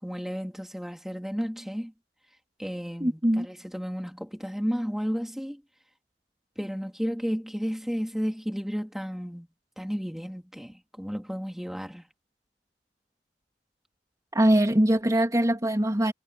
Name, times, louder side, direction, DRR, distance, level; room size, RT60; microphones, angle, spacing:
voice 1, 0.0-1.9 2.6-5.6 6.6-9.5 9.8-12.0, equal, ahead, 3.2 m, -33 dB
voice 2, 3.0-3.5 14.3-16.1, right 1 dB, 20° right, 2.8 m, -22 dB
head